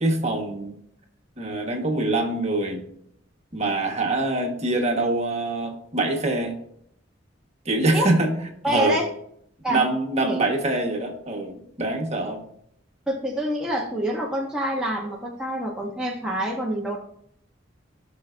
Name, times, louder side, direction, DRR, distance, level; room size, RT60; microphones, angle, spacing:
voice 1, 0.0-0.7 1.4-2.8 3.5-6.6 7.6-8.3 8.6-9.0 9.7-12.4, right 2 dB, 35° right, 2 dB, 1.4 m, -24 dB
voice 2, 8.6-9.1 9.6-9.8 10.2-10.4 13.1-17.0, right 1 dB, 5° right, -2 dB, 0.9 m, -26 dB
17.0 x 5.9 x 2.6 m, 0.70 s
head